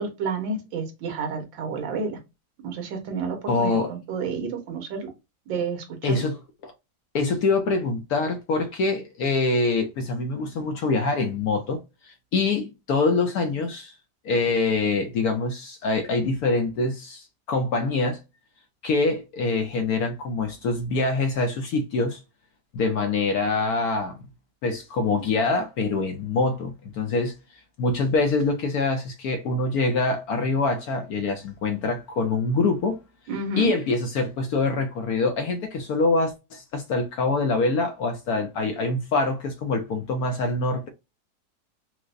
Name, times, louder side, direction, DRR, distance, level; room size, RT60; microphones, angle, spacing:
voice 1, 0.0-2.2 2.6-5.1 5.5-6.2 33.3-33.7, right 4 dB, 85° right, 1.8 m, -30 dB
voice 2, 3.5-3.9 6.0-6.7 7.1-13.9 14.2-18.2 18.8-22.2 22.7-24.2 24.6-27.3 27.8-33.0 33.6-40.9, left 3 dB, 65° left, 1.0 m, -25 dB
4.7 x 2.1 x 2.5 m
omnidirectional pair, 2.0 m